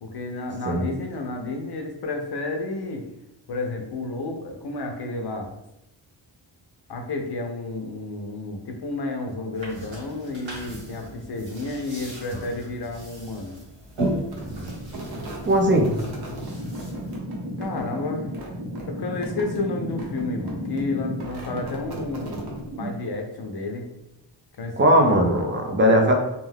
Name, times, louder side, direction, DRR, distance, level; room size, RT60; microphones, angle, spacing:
voice 1, 0.0-3.1 3.5-5.5 6.9-13.5 17.6-18.3 18.9-22.5 22.8-23.9 24.6-25.1, left 2 dB, 60° left, 2 dB, 0.6 m, -31 dB
sound 1, 9.5-17.2, right 1 dB, 80° right, 1.4 m, -36 dB
sound 2, 14.2-23.2, equal, 55° right, 0.8 m, -34 dB
voice 2, 15.5-15.9 24.8-26.1, equal, 25° right, 2 dB, 0.4 m, -18 dB
2.3 x 2.2 x 3.3 m, 0.88 s
wide cardioid pair, 120°, 45 cm